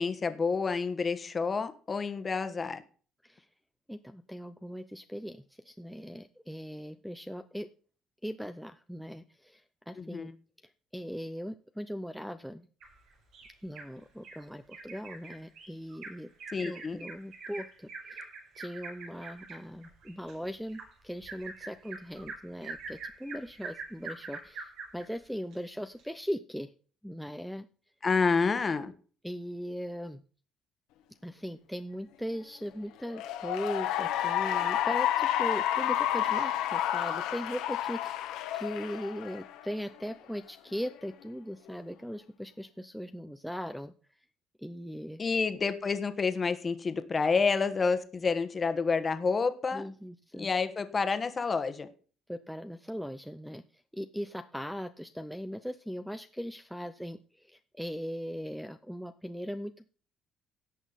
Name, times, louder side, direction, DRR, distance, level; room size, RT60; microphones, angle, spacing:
voice 1, 0.0-2.8 10.0-10.3 16.5-17.0 28.0-28.9 45.2-49.9 50.4-51.9, left 4 dB, 30° left, 10 dB, 1.3 m, -29 dB
voice 2, 3.9-7.7 8.2-10.3 10.9-12.7 13.6-16.3 16.6-18.3 18.6-26.7 27.0-27.6 29.2-30.2 31.2-43.9 44.6-45.2 49.7-50.5 52.3-53.6 53.9-57.2 57.5-59.9, equal, ahead, 10 dB, 0.6 m, -39 dB
Bird vocalization bird call bird song, 12.8-13.9 14.2-14.4 14.7-25.1 25.5-25.6 26.0-26.1, right 4 dB, 75° right, 5.0 m, -44 dB
Cheering / Applause, 33.0-39.7, left 11 dB, 90° left, 1.5 m, -30 dB
17.0 x 6.2 x 4.0 m, 0.40 s
cardioid pair, 120°, 0 cm